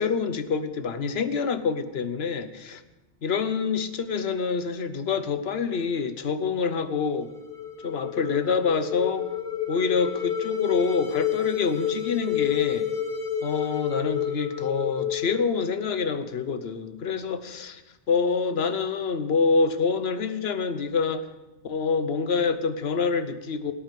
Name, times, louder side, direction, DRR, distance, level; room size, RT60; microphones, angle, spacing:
voice 1, 0.0-2.8 3.2-7.3 7.8-9.3 9.7-12.9 13.4-17.8 18.1-21.3 21.6-23.7, left 5 dB, 60° left, 10 dB, 1.2 m, -26 dB
sound 1, 7.1-16.3, left 9 dB, 45° left, 1.7 m, -30 dB
17.5 x 8.6 x 7.5 m, 1.1 s
omnidirectional pair, 1.2 m